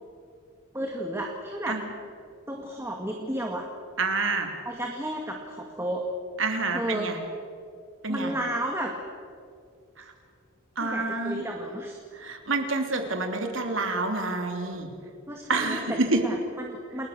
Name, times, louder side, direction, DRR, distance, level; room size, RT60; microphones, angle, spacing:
voice 1, 0.7-1.8 2.5-3.7 4.7-6.0 6.7-7.1 8.1-8.9 10.8-12.0 15.3-17.1, right 1 dB, 10° right, 1 dB, 2.0 m, -32 dB
voice 2, 4.0-4.5 6.4-7.2 8.0-8.3 10.0-10.1 10.8-11.4 12.1-14.9 15.5-16.2, right 3 dB, 65° right, 4 dB, 3.3 m, -28 dB
29.0 x 21.0 x 6.8 m, 2.4 s
head